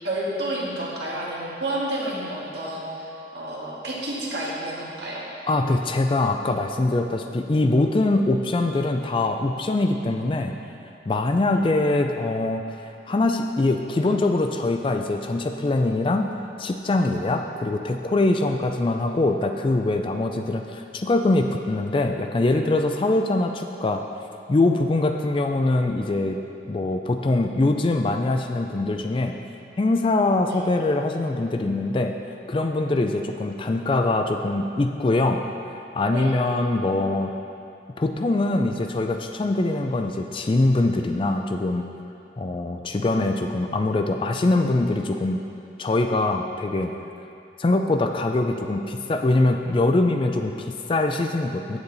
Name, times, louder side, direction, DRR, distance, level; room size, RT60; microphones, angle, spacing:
voice 1, 0.0-5.2 11.5-11.7 30.5-30.6 36.1-36.3, right 1 dB, 65° right, -6 dB, 1.8 m, -30 dB
voice 2, 5.5-10.5 11.1-12.6 13.1-24.0 24.5-26.4 26.7-29.3 29.8-32.2 32.5-37.3 38.0-41.9 42.4-45.4 45.8-46.9 47.6-51.8, left 2 dB, 30° left, 5 dB, 0.3 m, -23 dB
8.5 x 7.9 x 4.0 m, 2.7 s
head